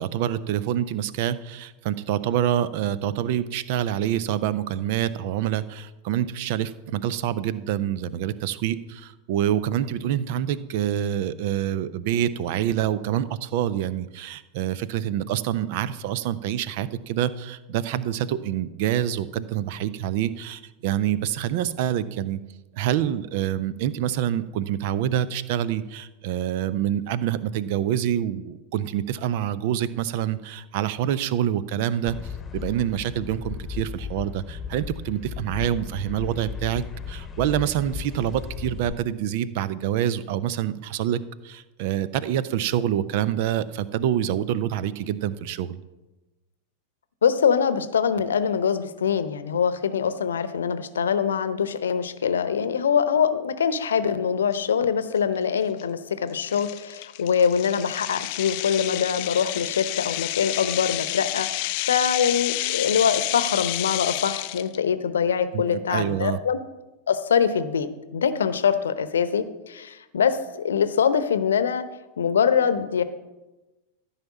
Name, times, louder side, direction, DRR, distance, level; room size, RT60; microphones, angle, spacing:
voice 1, 0.0-22.4 22.7-32.2 32.5-45.8 65.5-66.4, right 11 dB, 50° right, 17 dB, 0.6 m, -26 dB
sound 1, 32.1-38.9, left 7 dB, 20° left, 1.1 m, -36 dB
voice 2, 47.2-66.6 67.1-71.8 72.2-73.0, left 7 dB, 65° left, 12 dB, 0.8 m, -24 dB
sound 2, 54.5-54.6 55.2-55.4 55.8-55.9 56.4-64.8, left 19 dB, 45° left, 0.4 m, -30 dB
14.0 x 5.7 x 7.3 m, 1.1 s
figure-of-eight pair, 90°, 0 cm